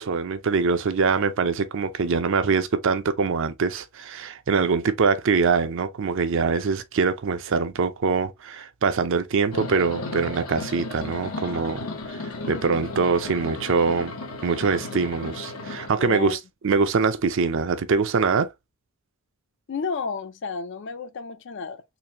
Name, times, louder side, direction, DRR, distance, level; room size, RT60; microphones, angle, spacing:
voice 1, 0.0-11.8 12.2-14.1 14.4-16.4 16.6-18.5, right 5 dB, 60° right, 0.5 m, -23 dB
sound 1, 9.5-15.9, left 2 dB, 75° left, 0.9 m, -34 dB
voice 2, 16.0-16.4 19.7-21.8, left 5 dB, 55° left, 0.5 m, -31 dB
4.0 x 2.5 x 2.9 m
head